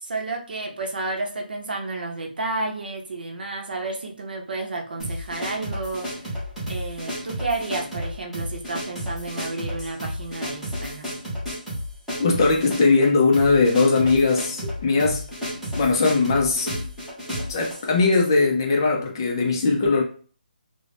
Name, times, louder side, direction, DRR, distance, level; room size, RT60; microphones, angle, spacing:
voice 1, 0.0-6.4 6.7-11.1, right 3 dB, 70° right, 0.7 m, -31 dB
sound 1, 5.0-18.3, equal, ahead, 0.7 m, -32 dB
voice 2, 12.2-15.2 15.8-16.7 17.5-20.0, left 3 dB, 25° left, 0.4 m, -20 dB
2.5 x 2.0 x 3.2 m
hypercardioid pair, 170°, 5 cm